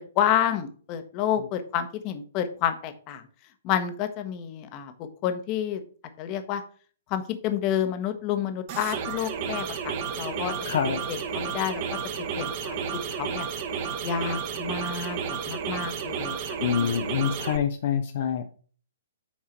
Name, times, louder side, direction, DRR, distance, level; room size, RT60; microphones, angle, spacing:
voice 1, 0.0-3.2 3.6-5.8 6.2-6.6 7.1-10.5 11.1-11.8 12.4-12.8 13.1-13.5 14.0-16.4 16.8-17.0, left 9 dB, 30° left, 9 dB, 1.0 m, -29 dB
sound 1, 8.7-17.6, right 6 dB, 40° right, 1.1 m, -32 dB
voice 2, 10.6-11.0 16.6-18.7, left 8 dB, 50° left, 6 dB, 0.6 m, -26 dB
7.3 x 4.7 x 4.4 m, 0.43 s
figure-of-eight pair, 120°, 0 cm